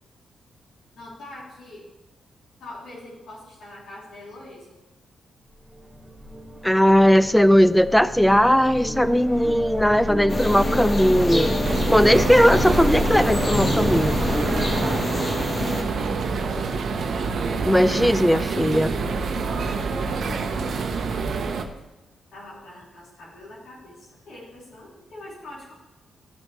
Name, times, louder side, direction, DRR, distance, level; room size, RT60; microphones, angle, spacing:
voice 1, 0.9-1.9 2.6-4.8 14.7-15.3 19.8-21.2 22.3-25.7, left 1 dB, 80° left, -7 dB, 3.1 m, -43 dB
sound 1, 5.8-15.0, equal, 15° right, 2.4 m, -29 dB
voice 2, 6.6-11.6 11.9-14.2 17.6-18.9, equal, 5° left, 13 dB, 0.5 m, -18 dB
sound 2, 10.3-15.8, left 1 dB, 35° left, 1.5 m, -27 dB
sound 3, 11.6-21.6, right 4 dB, 70° right, 0.9 m, -27 dB
14.5 x 6.2 x 3.2 m, 1.0 s
cardioid pair, 80°, 0 cm